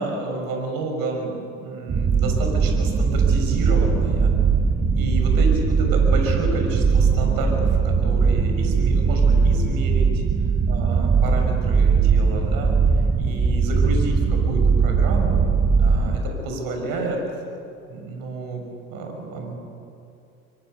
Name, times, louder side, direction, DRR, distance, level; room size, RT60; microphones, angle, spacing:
voice 1, 0.0-1.3 1.6-4.3 5.0-10.2 10.7-12.8 13.2-15.4 15.8-17.2 17.9-18.6 18.9-19.6, right 2 dB, 55° right, 3 dB, 6.6 m, -30 dB
sound 1, 1.9-16.2, right 5 dB, 20° right, 1.4 m, -19 dB
24.5 x 23.0 x 6.9 m, 2.6 s
hypercardioid pair, 75°, 41 cm